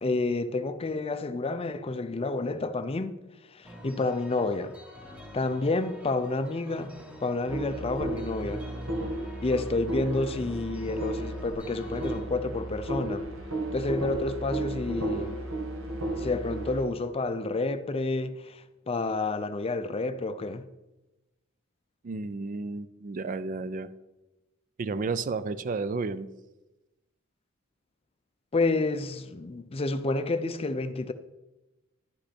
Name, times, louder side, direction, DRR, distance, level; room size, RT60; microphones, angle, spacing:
voice 1, 0.0-3.2 3.5-4.7 5.3-8.6 9.4-13.3 13.7-15.4 16.2-20.6 28.5-31.1, left 3 dB, 30° left, 0.5 m, -29 dB
sound 1, 3.6-12.2, left 1 dB, 5° right, 1.4 m, -46 dB
sound 2, 7.5-16.8, right 1 dB, 80° right, 1.4 m, -34 dB
voice 2, 22.0-23.9 24.8-26.3, right 4 dB, 40° right, 0.4 m, -32 dB
11.0 x 5.2 x 4.3 m
head